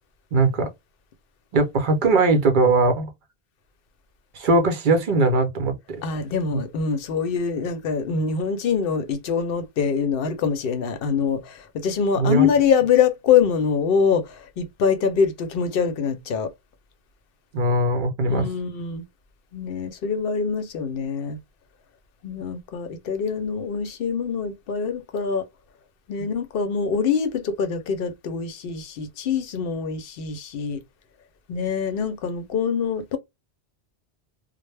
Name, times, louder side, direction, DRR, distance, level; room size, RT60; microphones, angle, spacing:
voice 1, 0.3-0.7 1.5-3.1 4.3-6.0 6.5-6.6 12.2-12.5 17.5-18.5 26.2-26.3, right 2 dB, 55° right, 0.7 m, -20 dB
voice 2, 6.0-16.5 18.3-19.1 19.5-21.4 22.2-25.4 26.1-30.8 31.5-33.2, left 6 dB, 65° left, 0.7 m, -24 dB
2.1 x 2.0 x 3.1 m
omnidirectional pair, 1.1 m